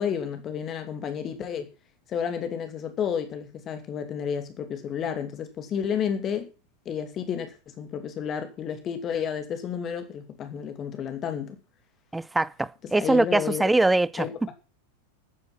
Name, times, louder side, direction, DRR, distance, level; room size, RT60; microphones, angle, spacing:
voice 1, 0.0-1.7 2.1-6.5 6.8-11.6 12.9-13.6 14.2-14.5, left 8 dB, 30° left, 2.6 m, -31 dB
voice 2, 12.1-14.3, right 2 dB, 5° right, 0.6 m, -23 dB
14.5 x 9.6 x 6.0 m
figure-of-eight pair, 90°, 0 cm